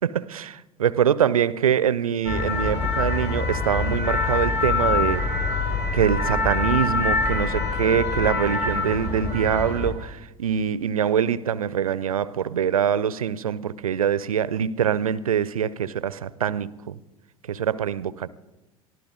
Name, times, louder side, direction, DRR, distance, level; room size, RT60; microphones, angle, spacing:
voice 1, 0.0-5.2 5.9-17.0 17.5-18.3, right 8 dB, 75° right, 0.5 m, -24 dB
sound 1, 2.3-9.9, left 3 dB, 35° left, 4.8 m, -25 dB
23.0 x 14.0 x 3.8 m
figure-of-eight pair, 75°, 18 cm